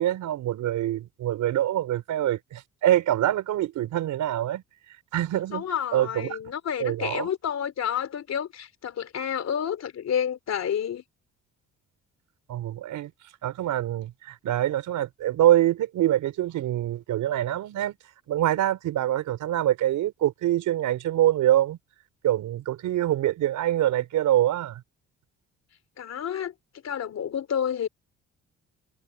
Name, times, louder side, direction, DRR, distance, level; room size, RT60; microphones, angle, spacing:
voice 1, 0.0-4.6 5.1-5.6 5.9-6.4 6.8-7.3 12.5-13.1 13.4-18.0 18.3-21.8 22.2-24.8, right 12 dB, 80° right, 4.7 m, -25 dB
voice 2, 5.5-11.0 26.0-26.5 26.8-27.9, left 8 dB, 60° left, 3.3 m, -29 dB
cardioid pair, 90°, 30 cm